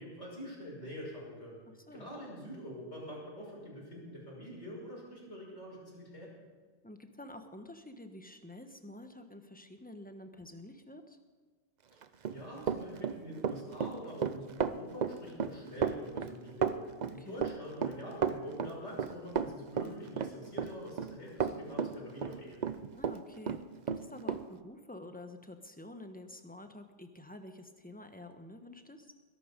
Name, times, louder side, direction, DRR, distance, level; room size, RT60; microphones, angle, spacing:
voice 1, 0.0-1.6 1.9-6.3 12.3-22.6, equal, 55° left, -4 dB, 6.6 m, -45 dB
voice 2, 6.8-11.2 17.2-17.4 22.9-23.6 23.9-29.1, left 1 dB, 5° left, 6 dB, 1.1 m, -49 dB
Run, 12.0-23.2 23.5-24.4, right 7 dB, 45° right, 0.6 m, -33 dB
21.5 x 12.0 x 5.3 m, 1.5 s
omnidirectional pair, 1.4 m